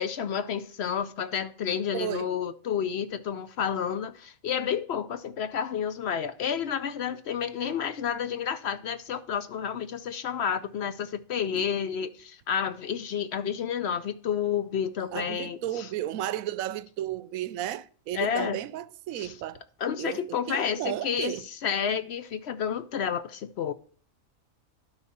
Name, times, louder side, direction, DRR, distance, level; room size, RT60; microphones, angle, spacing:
voice 1, 0.0-15.9 18.1-18.6 19.2-19.3 19.8-21.3 21.6-23.7, left 8 dB, 60° left, 0.8 m, -30 dB
voice 2, 1.9-2.3 11.5-11.6 15.1-19.6 20.0-21.5, right 12 dB, 85° right, 1.0 m, -34 dB
12.0 x 4.9 x 4.1 m
omnidirectional pair, 1.4 m